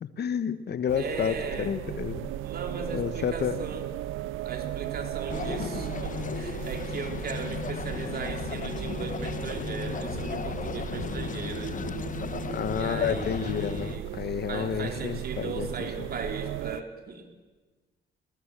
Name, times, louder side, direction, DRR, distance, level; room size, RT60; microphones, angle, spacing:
voice 1, 0.0-2.3 2.9-3.5 12.4-15.7, left 8 dB, 55° left, 13 dB, 1.2 m, -30 dB
sound 1, 0.9-16.8, right 13 dB, 85° right, 0.6 m, -36 dB
voice 2, 1.0-1.7 2.4-3.8 4.5-11.8 12.8-14.0 14.5-17.3, right 4 dB, 50° right, 4 dB, 3.6 m, -37 dB
sound 2, 5.3-14.0, left 7 dB, 40° left, 0.9 m, -35 dB
21.0 x 20.0 x 7.5 m, 1.3 s
cardioid pair, 90°, 20 cm